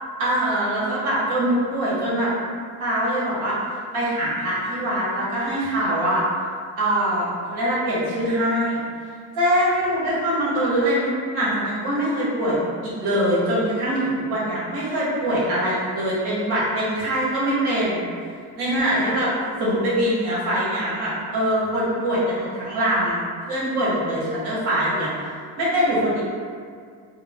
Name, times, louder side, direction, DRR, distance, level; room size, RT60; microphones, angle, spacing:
voice 1, 0.2-2.3 2.8-3.6 3.9-6.2 6.8-8.8 9.3-18.0 18.6-19.3 19.6-23.2 23.5-26.2, right 1 dB, 70° right, -7 dB, 1.1 m, -23 dB
2.3 x 2.1 x 3.3 m, 2.1 s
cardioid pair, 165°, 40 cm